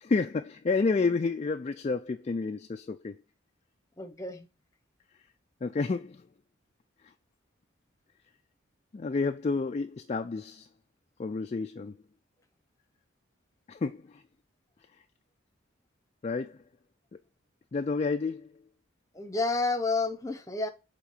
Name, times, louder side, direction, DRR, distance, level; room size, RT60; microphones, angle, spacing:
voice 1, 0.0-3.2 5.6-6.3 8.9-10.7 11.2-12.0 13.7-14.2 16.2-16.6 17.7-18.5, left 4 dB, 30° left, 0.3 m, -30 dB
voice 2, 4.0-4.5 19.1-20.7, left 3 dB, 15° left, 0.9 m, -30 dB
7.4 x 3.7 x 5.0 m
head